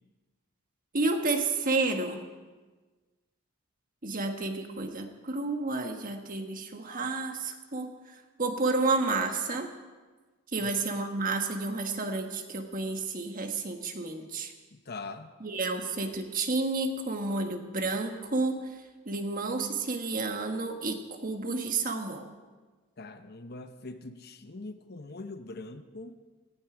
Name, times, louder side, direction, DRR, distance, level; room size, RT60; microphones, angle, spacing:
voice 1, 0.9-2.2 4.0-7.9 8.4-9.7 10.5-14.5 15.4-18.6 19.0-22.3, right 3 dB, 40° right, 5 dB, 1.5 m, -30 dB
voice 2, 14.7-15.3 23.0-26.2, left 3 dB, 45° left, 8 dB, 0.9 m, -42 dB
18.0 x 15.5 x 5.0 m, 1.3 s
head